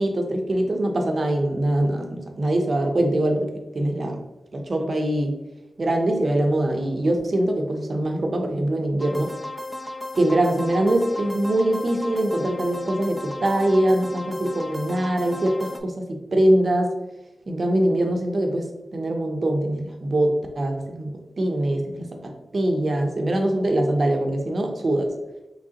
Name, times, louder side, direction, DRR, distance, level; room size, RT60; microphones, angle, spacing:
voice 1, 0.0-4.2 4.5-5.4 5.8-9.3 10.2-16.9 17.5-18.7 18.9-25.1, right 1 dB, 45° right, 3 dB, 0.7 m, -23 dB
sound 1, 9.0-15.8, left 2 dB, 5° left, 0.3 m, -34 dB
4.9 x 3.2 x 2.9 m, 1.0 s
wide cardioid pair, 140°, 0 cm